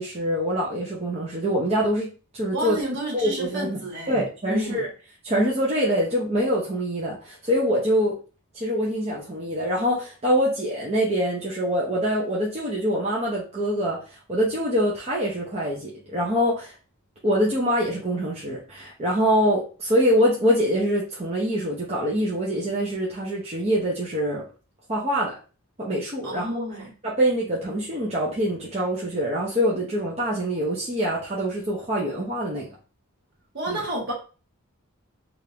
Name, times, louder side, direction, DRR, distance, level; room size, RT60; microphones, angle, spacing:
voice 1, 0.0-2.8 3.1-3.8 4.1-4.9 5.2-8.2 8.5-16.7 17.2-24.4 24.9-25.3 25.8-26.6 27.0-32.7 33.7-33.8, equal, 30° right, -5 dB, 0.7 m, -24 dB
voice 2, 2.5-4.9 26.2-26.9 33.5-34.1, right 1 dB, 55° right, -2 dB, 1.3 m, -31 dB
3.6 x 2.5 x 2.8 m, 0.35 s
head